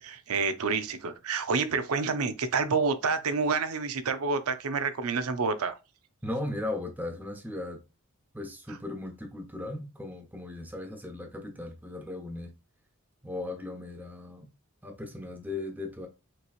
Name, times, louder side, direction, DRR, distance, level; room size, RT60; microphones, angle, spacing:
voice 1, 0.0-5.8, right 4 dB, 80° right, 0.6 m, -28 dB
voice 2, 6.2-7.8 8.3-12.5 13.2-14.5 14.8-16.1, left 2 dB, 10° right, 0.9 m, -37 dB
5.8 x 3.0 x 2.4 m
head